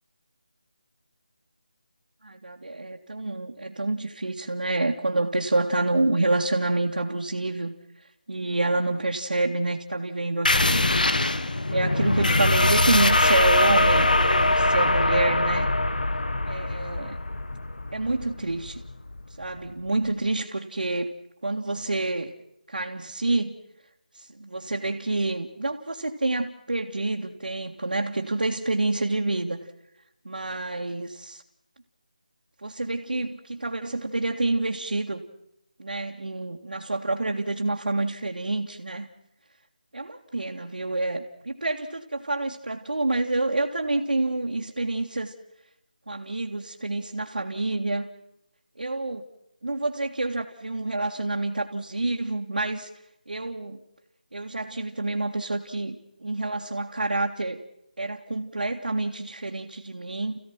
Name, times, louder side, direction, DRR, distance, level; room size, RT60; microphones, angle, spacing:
voice 1, 2.2-7.7 8.3-10.9 11.7-15.7 16.5-17.2 17.9-18.8 19.4-21.1 21.4-22.3 22.7-23.6 24.2-29.6 30.2-31.4 32.6-35.2 35.8-39.1 39.9-45.3 46.1-48.1 48.8-49.2 49.6-52.9 53.3-53.8 54.3-57.6 58.0-60.4, right 2 dB, 80° right, -2 dB, 2.2 m, -28 dB
sound 1, 10.5-19.7, left 2 dB, 75° left, 1.5 m, -22 dB
30.0 x 16.0 x 6.1 m, 0.81 s
figure-of-eight pair, 180°, 5 cm